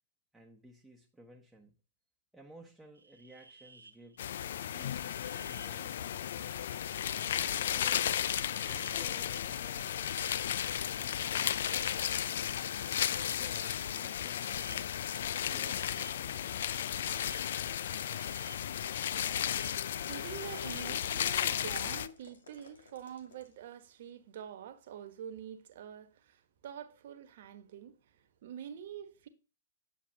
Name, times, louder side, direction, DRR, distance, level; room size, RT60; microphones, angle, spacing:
voice 1, 0.3-1.7 2.3-4.2 4.6-6.7 7.3-8.2 8.6-10.1 10.9-12.7 13.1-15.0 15.4-16.6, right 1 dB, 5° right, 1.2 m, -56 dB
sound 1, 2.9-21.2, right 3 dB, 90° right, 0.8 m, -55 dB
sound 2, 4.2-22.1, left 10 dB, 65° left, 0.4 m, -34 dB
sound 3, 5.1-6.9 8.0-10.0 11.5-13.5 14.5-16.9 18.1-20.3 21.3-23.5, left 4 dB, 80° left, 2.1 m, -57 dB
voice 2, 19.9-29.3, right 9 dB, 60° right, 1.3 m, -46 dB
9.7 x 7.3 x 2.8 m
hypercardioid pair, 115°, 0 cm